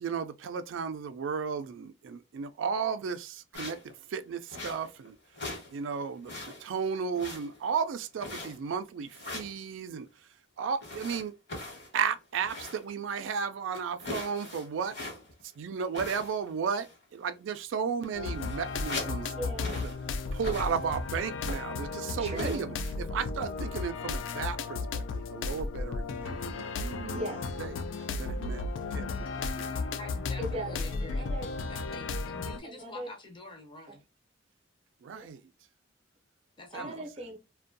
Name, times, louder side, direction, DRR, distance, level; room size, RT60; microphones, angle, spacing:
voice 1, 0.0-3.8 4.1-5.2 5.7-10.1 10.6-11.3 11.9-15.0 15.6-19.3 19.8-19.9 20.3-27.3 27.6-27.7 28.2-28.6 28.9-29.8 35.0-35.4 36.7-36.9, right 6 dB, 85° right, 0.3 m, -34 dB
sound 1, 3.5-3.9 4.5-5.1 5.3-5.7 6.0-6.7 7.1-7.7 8.2-8.7 9.1-9.6 10.8-12.9 13.3-13.4 13.7-15.4 15.9-16.5 16.8-17.0 17.7-17.8 18.0-19.2 19.6-20.0 20.4-21.0 21.4-21.8 22.3-22.6, left 2 dB, 60° left, 1.1 m, -40 dB
sound 2, 18.1-32.6, left 3 dB, 85° left, 0.3 m, -34 dB
voice 2, 19.3-19.8 22.2-22.7 27.0-27.5 30.4-31.5 32.6-33.1 33.9-34.0 35.1-35.3 36.7-37.4, right 1 dB, 35° right, 0.5 m, -39 dB
voice 3, 30.0-34.0 36.6-37.1, left 2 dB, 25° left, 0.5 m, -47 dB
2.5 x 2.2 x 2.5 m
head